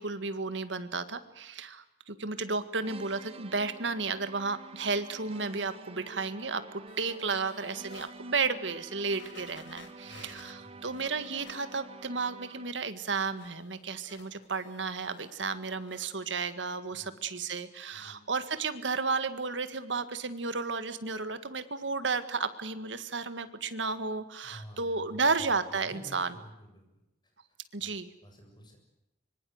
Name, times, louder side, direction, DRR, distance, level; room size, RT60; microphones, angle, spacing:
voice 1, 0.0-26.3 27.7-28.1, right 4 dB, 80° right, 11 dB, 1.9 m, -33 dB
sound 1, 2.8-12.9, right 3 dB, 30° right, 0.9 m, -49 dB
sound 2, 6.9-8.1 8.7-8.8 9.1-12.1 12.4-15.5 15.8-16.1 16.5-16.6, left 4 dB, 75° left, 2.9 m, -55 dB
voice 2, 10.0-11.0 16.9-17.2 17.9-18.2 24.4-26.8 27.4-27.9 28.2-28.8, equal, 25° left, 3 dB, 7.6 m, -51 dB
25.5 x 24.0 x 8.0 m, 0.90 s
head